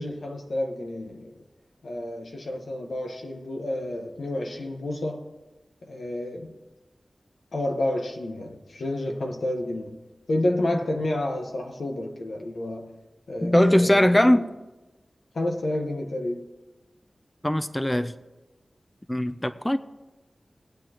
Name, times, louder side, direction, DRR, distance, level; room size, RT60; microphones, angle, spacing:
voice 1, 0.0-1.4 1.8-5.3 5.8-6.5 7.5-10.0 10.3-12.9 13.3-14.4 15.3-16.5, left 1 dB, 85° left, 1.3 m, -30 dB
voice 2, 13.4-14.4 17.4-18.1 19.1-19.8, left 1 dB, 15° left, 0.5 m, -20 dB
21.0 x 8.1 x 3.0 m
wide cardioid pair, 50°, 0 cm